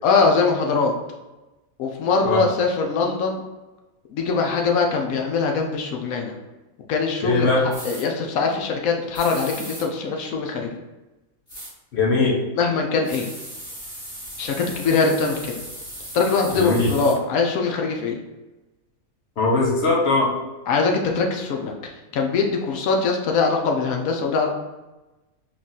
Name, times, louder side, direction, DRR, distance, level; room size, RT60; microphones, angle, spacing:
voice 1, 0.0-0.9 1.8-3.4 4.1-6.3 6.9-7.5 7.8-10.7 12.5-13.3 14.4-15.5 16.1-18.1 20.7-21.7 22.1-24.5, left 4 dB, 75° left, 2 dB, 1.1 m, -22 dB
voice 2, 7.2-7.7 11.9-12.3 16.5-16.9 19.4-20.3, left 3 dB, 55° left, -3 dB, 0.9 m, -20 dB
sound 1, 7.7-8.0 9.1-9.9 11.5-11.7 13.0-17.2, equal, 40° left, 1.8 m, -37 dB
3.7 x 2.4 x 3.9 m, 1.1 s
omnidirectional pair, 1.5 m